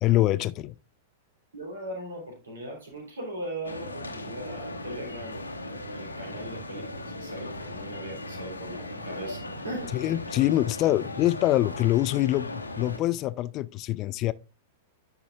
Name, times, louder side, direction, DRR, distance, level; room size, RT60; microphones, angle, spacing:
voice 1, 0.0-0.7 9.9-12.5 12.8-14.3, left 15 dB, 35° left, 0.3 m, -24 dB
voice 2, 1.5-5.4 5.7-10.0, right 1 dB, 70° right, 3.4 m, -39 dB
sound 1, 3.6-13.0, left 1 dB, 80° left, 1.1 m, -38 dB
10.0 x 5.6 x 2.4 m
figure-of-eight pair, 95°, 0 cm